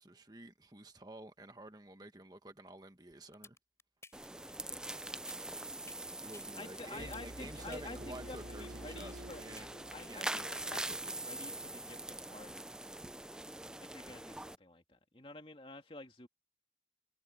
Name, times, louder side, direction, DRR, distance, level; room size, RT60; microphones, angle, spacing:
voice 1, 0.0-3.6 6.2-11.5, right 1 dB, 20° right, 1.4 m, -51 dB
sound 1, 3.1-10.3, left 4 dB, 15° left, 6.2 m, -56 dB
sound 2, 4.1-14.6, right 1 dB, 5° right, 0.3 m, -44 dB
voice 2, 6.6-12.7 13.8-16.3, left 2 dB, 30° left, 2.4 m, -50 dB
sound 3, 7.0-10.9, right 1 dB, 85° right, 2.0 m, -49 dB
head